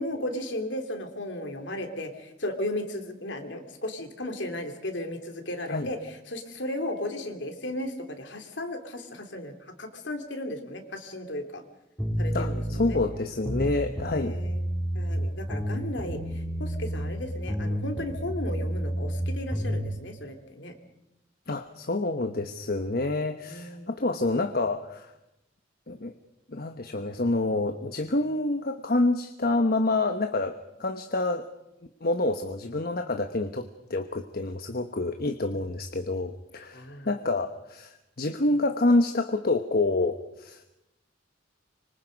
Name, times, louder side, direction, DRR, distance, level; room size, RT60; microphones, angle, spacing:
voice 1, 0.0-6.0 6.3-9.5 9.8-11.6 12.2-13.0 14.1-14.6 14.9-20.7 23.4-23.9 36.7-37.1, left 1 dB, 65° left, 5 dB, 3.2 m, -35 dB
sound 1, 12.0-13.0 13.4-15.2 15.5-17.2 17.5-19.9, equal, 5° left, 4.7 m, -30 dB
voice 2, 12.3-14.4 21.5-25.1 25.9-26.1 26.5-31.4 32.0-40.6, left 2 dB, 50° left, 7 dB, 1.1 m, -27 dB
25.5 x 25.0 x 5.3 m, 0.91 s
head